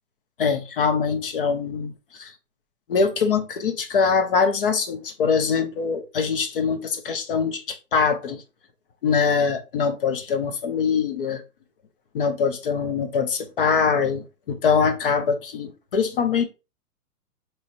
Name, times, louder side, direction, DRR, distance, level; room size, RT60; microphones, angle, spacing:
voice 1, 0.4-2.3 2.9-8.4 9.0-11.4 12.1-16.4, left 5 dB, 35° left, 0.6 m, -23 dB
4.8 x 3.1 x 2.6 m
hypercardioid pair, 130°, 46 cm